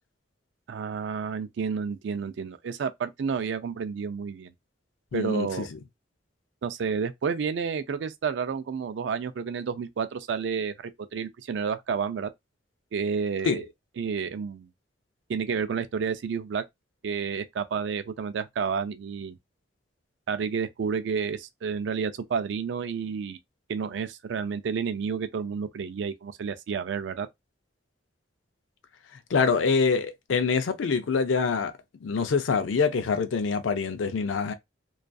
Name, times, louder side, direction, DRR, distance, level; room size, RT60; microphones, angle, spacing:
voice 1, 0.7-4.5 5.1-5.7 6.6-12.3 12.9-13.7 14.0-14.7 15.3-16.6 17.0-19.4 20.3-23.4 23.7-27.3, right 6 dB, 70° right, 0.3 m, -30 dB
voice 2, 5.1-5.7 13.5-13.6 29.3-31.7 32.0-34.5, left 5 dB, 85° left, 0.4 m, -25 dB
2.5 x 2.3 x 2.2 m
head